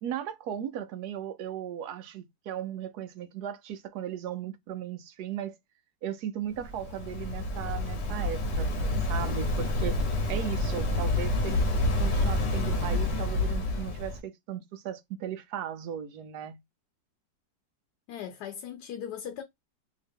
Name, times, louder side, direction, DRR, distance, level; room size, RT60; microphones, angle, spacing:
voice 1, 0.0-5.6 6.0-10.0 10.3-11.6 12.0-16.6, right 10 dB, 70° right, 1.1 m, -37 dB
Waves surf, 6.5-14.2, left 2 dB, 45° left, 1.0 m, -28 dB
voice 2, 18.1-19.4, left 9 dB, 75° left, 1.1 m, -38 dB
3.0 x 2.8 x 3.4 m
omnidirectional pair, 1.8 m